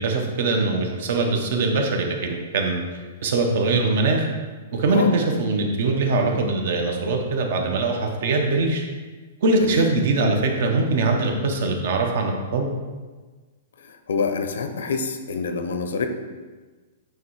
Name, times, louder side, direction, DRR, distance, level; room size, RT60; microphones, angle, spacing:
voice 1, 0.0-2.8 3.2-4.3 4.7-8.8 9.4-12.7, right 3 dB, 45° right, 3 dB, 0.9 m, -22 dB
voice 2, 13.8-16.1, left 5 dB, 80° left, 7 dB, 0.8 m, -26 dB
8.9 x 3.1 x 4.7 m, 1.3 s
hypercardioid pair, 175°, 0 cm